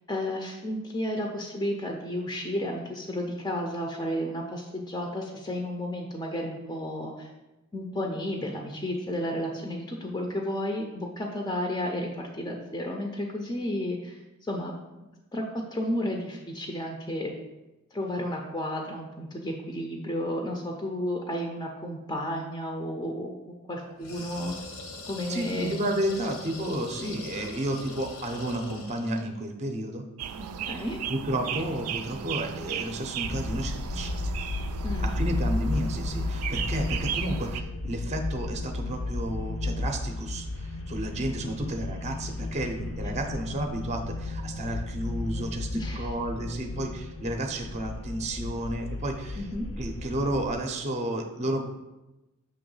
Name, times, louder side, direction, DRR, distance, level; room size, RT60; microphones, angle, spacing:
voice 1, 0.1-7.3 7.7-14.2 14.5-14.8 15.3-15.4 15.7-17.3 17.9-23.3 23.7-24.6 25.1-25.7 27.0-27.1 30.4-31.0 34.8-35.5 45.7-46.1 49.4-49.7, left 1 dB, 15° left, 1 dB, 0.5 m, -32 dB
sound 1, 24.0-29.3, left 2 dB, 85° left, 1.1 m, -42 dB
voice 2, 25.3-30.0 30.7-30.8 31.1-34.2 35.0-49.5 49.8-51.6, right 1 dB, 30° right, 4 dB, 0.6 m, -32 dB
sound 2, 30.2-37.6, right 8 dB, 90° right, 0.4 m, -36 dB
sound 3, 33.2-50.5, left 2 dB, 70° left, 0.6 m, -33 dB
6.9 x 3.1 x 5.4 m, 1.0 s
head